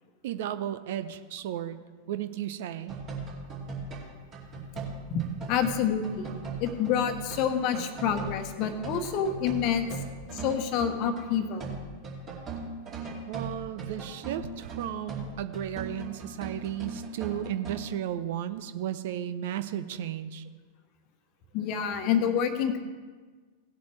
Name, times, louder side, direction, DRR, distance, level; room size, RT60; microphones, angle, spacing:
voice 1, 0.2-1.8 2.1-3.0 13.3-20.4, right 11 dB, 55° right, 11 dB, 0.5 m, -34 dB
sound 1, 2.9-11.3 11.6-17.8, right 3 dB, 30° right, 2.6 m, -39 dB
voice 2, 5.5-10.0 10.3-11.7 21.5-22.8, left 7 dB, 40° left, 8 dB, 1.1 m, -28 dB
17.5 x 8.1 x 3.3 m, 1.4 s
figure-of-eight pair, 90°, 0 cm